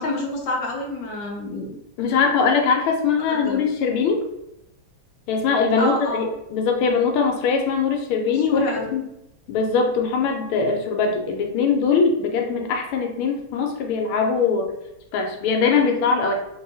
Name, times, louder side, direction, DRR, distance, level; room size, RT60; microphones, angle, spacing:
voice 1, 0.0-1.8 3.3-3.6 5.8-6.2 8.3-8.9, left 1 dB, 65° left, -1 dB, 1.2 m, -28 dB
voice 2, 2.0-4.2 5.3-9.0 9.5-14.7 15.1-16.3, left 5 dB, 85° left, 3 dB, 1.6 m, -21 dB
3.4 x 2.7 x 2.6 m, 0.82 s
omnidirectional pair, 2.3 m